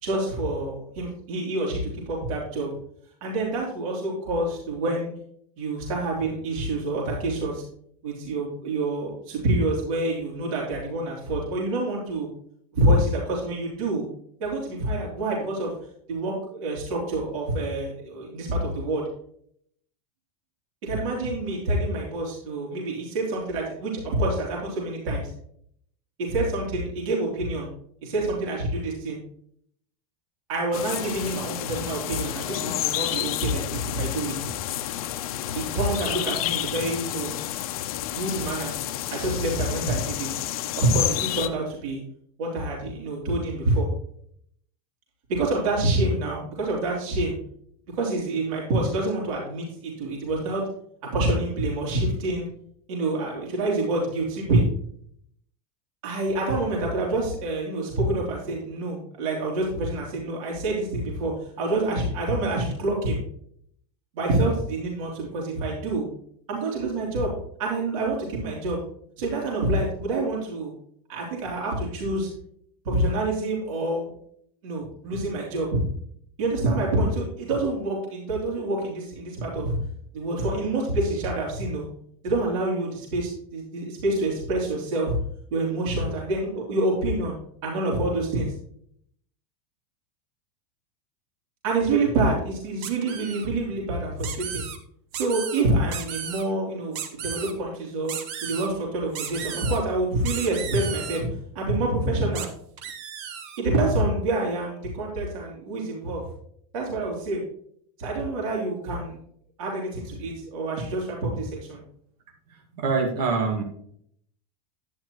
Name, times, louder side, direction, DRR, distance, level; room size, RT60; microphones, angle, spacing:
voice 1, 0.0-2.7 3.2-5.1 5.6-7.6 8.0-12.3 12.7-14.1 14.4-15.7 16.1-19.0 20.8-25.3 26.2-27.7 28.0-29.2 30.5-34.3 35.5-37.4 38.1-38.7 39.1-40.3 40.7-42.0 42.4-43.9 45.3-47.4 47.9-50.6 51.1-52.5 52.9-54.6 56.0-63.2 64.1-66.1 66.5-67.3 67.6-68.8 69.2-70.7 71.1-72.3 72.8-74.1 74.6-75.8 76.4-79.8 80.1-81.9 82.2-85.1 85.5-87.3 87.6-88.5 91.6-94.6 95.1-98.1 98.4-101.3 101.5-102.5 103.6-106.2 106.7-107.4 108.0-109.2 109.6-111.8, right 2 dB, 60° right, -3 dB, 3.2 m, -27 dB
sound 1, 30.7-41.5, left 12 dB, 70° left, 0.7 m, -30 dB
sound 2, 92.8-93.5 94.2-94.8 95.1-95.6 95.9-96.4 96.9-97.5 98.1-98.7 99.1-99.8 100.2-101.2 102.3-102.5 102.8-103.6, right 8 dB, 45° right, 1.1 m, -34 dB
voice 2, 112.5-113.6, right 4 dB, 80° right, 2 dB, 2.0 m, -25 dB
10.5 x 9.9 x 3.1 m, 0.65 s
supercardioid pair, 175°, 19 cm